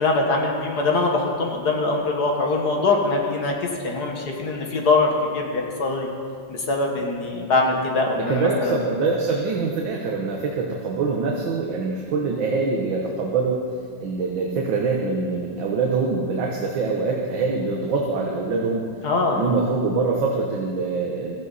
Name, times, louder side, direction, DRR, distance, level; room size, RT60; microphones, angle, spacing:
voice 1, 0.0-3.5 3.8-6.1 6.5-8.7 19.0-19.4, left 3 dB, 55° left, 0 dB, 2.0 m, -22 dB
voice 2, 8.3-13.6 14.0-18.9 19.3-21.4, right 4 dB, 70° right, -1 dB, 1.9 m, -24 dB
16.5 x 14.0 x 4.2 m, 2.1 s
omnidirectional pair, 2.2 m